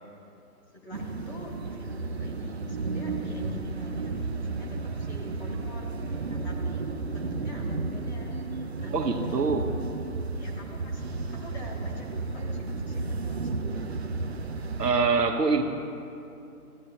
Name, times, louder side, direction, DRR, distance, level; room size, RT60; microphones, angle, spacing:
voice 1, 0.7-6.8 7.1-8.4 8.8-9.4 10.4-13.8, left 2 dB, 45° left, -2 dB, 2.0 m, -45 dB
sound 1, 0.9-14.9, right 3 dB, 45° right, 0.6 m, -33 dB
voice 2, 8.9-9.7 14.8-15.6, right 4 dB, 85° right, 4 dB, 1.4 m, -24 dB
16.5 x 9.5 x 3.0 m, 2.7 s
hypercardioid pair, 170°, 47 cm